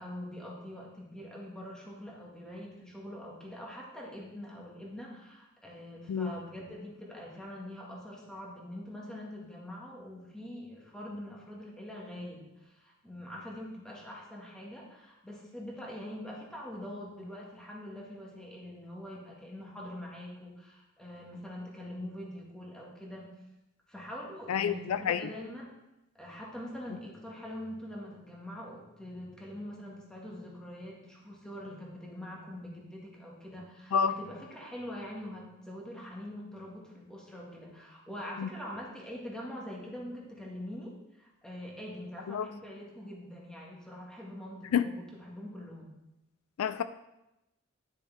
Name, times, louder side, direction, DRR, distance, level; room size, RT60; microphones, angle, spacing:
voice 1, 0.0-23.3 23.9-25.8 26.2-45.9, left 1 dB, 5° left, -3 dB, 1.8 m, -44 dB
voice 2, 24.5-25.3 33.9-34.1 38.4-38.5 42.3-42.5 44.7-44.9 46.6-46.8, left 7 dB, 80° left, 13 dB, 0.4 m, -28 dB
10.5 x 6.6 x 3.5 m, 0.93 s
head